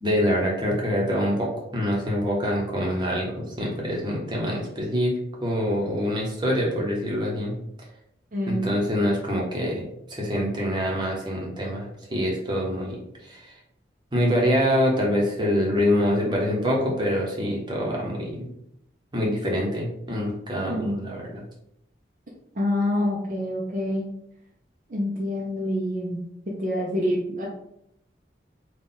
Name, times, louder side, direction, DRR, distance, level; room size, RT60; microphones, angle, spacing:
voice 1, 0.0-5.1 5.4-7.5 8.5-13.0 13.2-13.5 14.1-18.5 19.1-21.4, equal, 25° right, -3 dB, 0.9 m, -25 dB
voice 2, 8.3-8.7 20.6-21.0 22.5-24.1 24.9-27.5, left 1 dB, 45° right, -3 dB, 0.6 m, -27 dB
3.8 x 2.4 x 3.9 m, 0.76 s
head